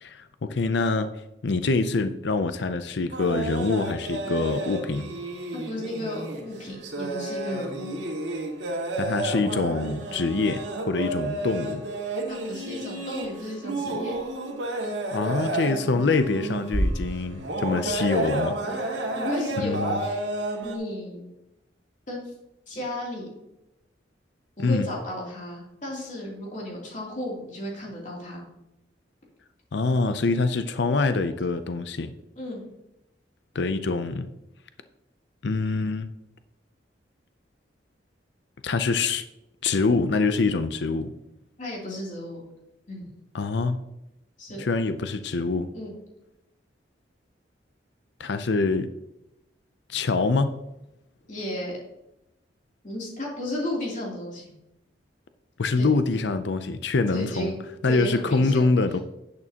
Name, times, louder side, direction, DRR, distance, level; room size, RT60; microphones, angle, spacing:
voice 1, 0.0-1.1 1.4-5.1 9.0-11.8 15.1-18.9 19.6-20.0 24.6-24.9 29.7-32.1 33.5-34.3 35.4-36.1 38.6-39.2 39.6-41.1 43.3-43.8 44.6-45.7 48.2-48.9 49.9-50.6 55.6-57.5 57.8-59.0, left 3 dB, 65° left, 0.5 m, -25 dB
sound 1, 3.1-20.8, right 2 dB, 75° right, 1.8 m, -31 dB
voice 2, 5.5-8.0 12.3-14.2 14.8-14.9 17.3-17.4 18.6-18.8 19.2-20.2 20.6-21.3 22.1-22.3 22.7-23.3 24.6-28.5 32.3-32.7 41.6-42.4 42.9-43.1 44.4-44.6 45.7-46.0 51.3-51.8 52.8-54.5 55.7-55.9 57.1-58.7, left 1 dB, 45° left, 3.0 m, -34 dB
11.0 x 8.6 x 2.9 m
head